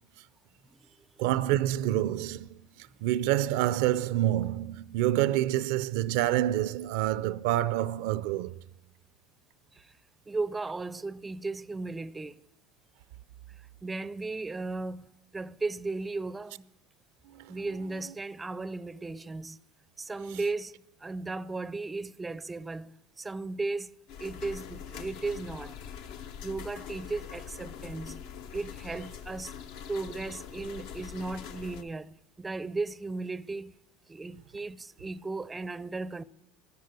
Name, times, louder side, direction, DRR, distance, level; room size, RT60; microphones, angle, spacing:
voice 1, 1.2-2.6 3.0-8.6 17.3-17.5, right 13 dB, 75° right, 0.4 m, -27 dB
voice 2, 10.3-12.4 13.8-16.7 17.5-19.6 20.0-23.9 24.2-25.8 26.4-28.2 28.5-29.5 29.9-33.8 34.1-36.2, right 3 dB, 15° right, 0.5 m, -36 dB
sound 1, 24.1-31.8, left 8 dB, 75° left, 0.9 m, -43 dB
14.0 x 12.0 x 8.0 m
supercardioid pair, 100°, 0 cm